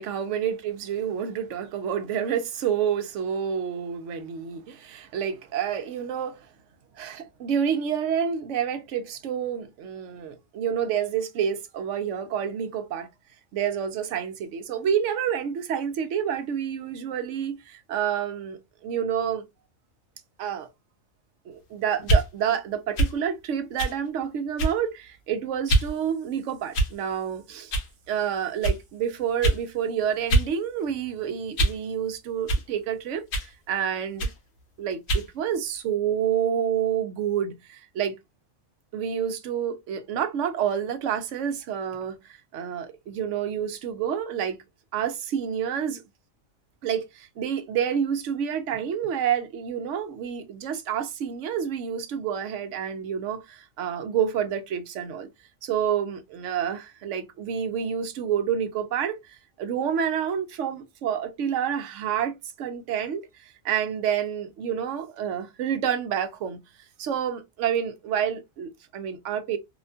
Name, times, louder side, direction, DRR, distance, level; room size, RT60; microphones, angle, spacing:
voice 1, 0.0-6.5 7.0-13.1 13.5-19.4 20.4-20.7 21.5-27.7 28.1-34.3 34.8-38.1 38.9-44.6 44.9-46.0 46.8-55.3 55.6-66.6 67.0-69.6, right 8 dB, 70° right, 0.9 m, -28 dB
sound 1, 22.0-22.3 23.0-23.2 23.8-24.0 24.6-24.9 25.7-25.9 26.7-27.1 27.7-27.9 28.6-28.8 29.4-29.6 30.3-30.5 30.9-31.8 32.5-32.7 33.3-33.5 34.2-34.4 35.1-35.3, right 2 dB, 60° left, 1.0 m, -24 dB
2.8 x 2.2 x 2.5 m
omnidirectional pair, 1.3 m